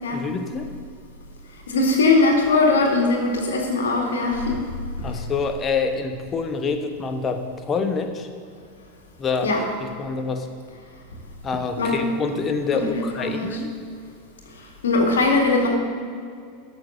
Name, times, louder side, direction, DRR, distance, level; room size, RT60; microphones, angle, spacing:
voice 1, 0.1-0.7 5.0-8.3 9.2-10.5 11.4-13.7, left 4 dB, 25° left, 6 dB, 1.2 m, -26 dB
voice 2, 1.7-4.6 9.4-9.6 11.8-12.0 12.7-13.5 14.6-15.7, left 3 dB, 75° left, 2 dB, 2.1 m, -20 dB
13.0 x 6.6 x 6.5 m, 2.3 s
figure-of-eight pair, 85°, 0 cm